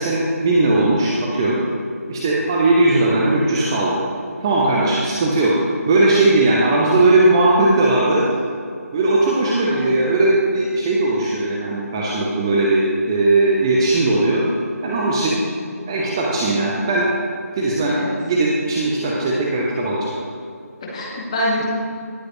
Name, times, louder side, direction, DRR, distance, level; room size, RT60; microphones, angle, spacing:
voice 1, 0.0-1.6 2.1-4.0 4.4-8.2 8.9-14.4 14.8-15.4 15.9-17.1 17.5-18.0 18.2-20.1, right 2 dB, 15° right, -4 dB, 0.8 m, -18 dB
voice 2, 20.8-21.6, left 1 dB, 20° left, -3 dB, 1.8 m, -26 dB
18.0 x 7.8 x 3.1 m, 2.4 s
figure-of-eight pair, 160°, 9 cm